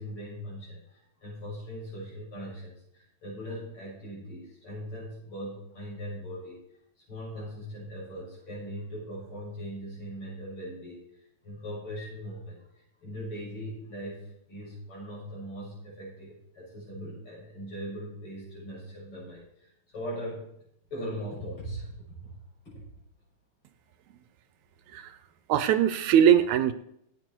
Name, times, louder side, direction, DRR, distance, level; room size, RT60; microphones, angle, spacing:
voice 1, 0.0-6.6 7.1-11.0 11.4-20.5 20.9-22.3 22.6-22.7, equal, 45° left, -5 dB, 7.9 m, -40 dB
voice 2, 25.5-26.7, right 9 dB, 80° right, 12 dB, 2.1 m, -21 dB
17.0 x 8.9 x 4.6 m, 0.72 s
omnidirectional pair, 3.3 m